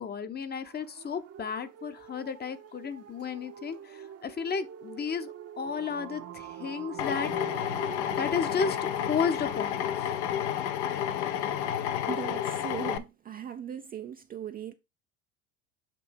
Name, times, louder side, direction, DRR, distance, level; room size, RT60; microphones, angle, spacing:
voice 1, 0.0-7.3 8.2-10.1, left 6 dB, 25° left, 0.8 m, -33 dB
sound 1, 0.6-8.3, right 9 dB, 40° right, 0.8 m, -46 dB
sound 2, 5.7-10.2, right 9 dB, 85° right, 0.7 m, -46 dB
Drill, 7.0-13.0, left 10 dB, 65° left, 0.7 m, -30 dB
voice 2, 12.1-14.7, right 9 dB, 25° right, 0.4 m, -39 dB
7.5 x 2.8 x 4.5 m
hypercardioid pair, 70°, 38 cm